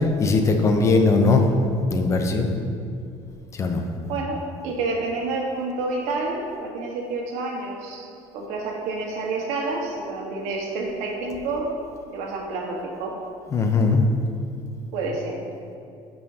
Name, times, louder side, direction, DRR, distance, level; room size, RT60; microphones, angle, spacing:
voice 1, 0.2-1.4 1.9-2.5 3.6-3.8 13.5-14.0, left 4 dB, 25° left, 4 dB, 0.6 m, -19 dB
voice 2, 4.1-11.7 12.1-13.2 14.9-15.4, right 3 dB, 80° right, 0 dB, 1.3 m, -29 dB
12.0 x 5.5 x 2.8 m, 2.5 s
cardioid pair, 160°, 11 cm